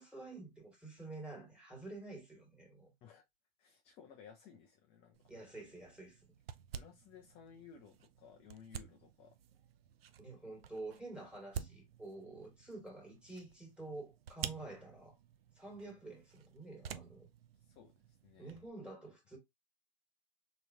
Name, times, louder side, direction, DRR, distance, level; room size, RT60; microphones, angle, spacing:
voice 1, 0.0-2.9 5.3-6.2 10.2-15.1 15.5-17.3 18.4-19.4, right 2 dB, 5° right, 1.6 m, -49 dB
voice 2, 3.6-5.2 6.7-9.4 17.6-18.5, left 7 dB, 20° left, 0.4 m, -58 dB
sound 1, 5.1-18.7, right 8 dB, 85° right, 0.5 m, -50 dB
3.9 x 2.8 x 2.5 m
hypercardioid pair, 135°, 29 cm